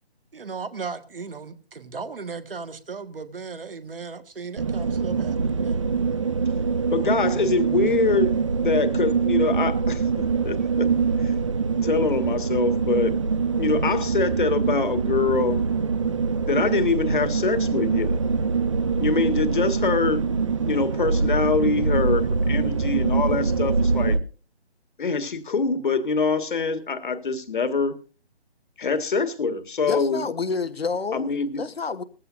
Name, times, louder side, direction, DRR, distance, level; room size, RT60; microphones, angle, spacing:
voice 1, 0.3-5.8, right 5 dB, 55° right, 1.7 m, -36 dB
sound 1, 4.6-24.2, right 5 dB, 30° right, 0.6 m, -24 dB
voice 2, 6.9-8.3 8.6-10.9 11.2-11.3 11.7-13.1 13.6-15.6 16.5-18.2 19.0-20.2 20.7-24.2 25.0-28.0 28.8-30.2 31.1-31.6, left 4 dB, 50° left, 1.8 m, -24 dB
voice 3, 29.9-31.3 31.6-32.0, left 4 dB, 65° left, 1.3 m, -28 dB
19.5 x 15.0 x 2.6 m
figure-of-eight pair, 150°, 33 cm